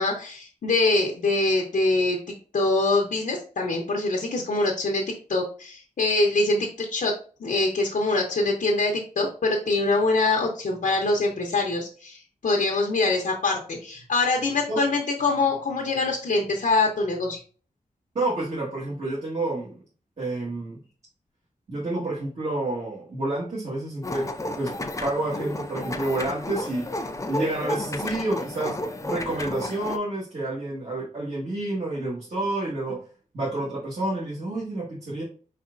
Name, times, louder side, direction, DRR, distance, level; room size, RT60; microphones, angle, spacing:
voice 1, 0.0-2.2 2.5-5.0 5.3-7.1 7.4-17.4, left 2 dB, 85° left, 0 dB, 0.8 m, -24 dB
voice 2, 18.1-19.7 20.2-20.8 21.7-24.3 24.6-24.7 25.0-26.8 27.3-28.8 29.0-33.0 33.3-35.2, right 2 dB, 55° right, -6 dB, 1.5 m, -29 dB
sound 1, 24.0-30.0, left 1 dB, 20° left, 0.5 m, -32 dB
4.5 x 4.2 x 2.5 m, 0.39 s
wide cardioid pair, 120°, 14 cm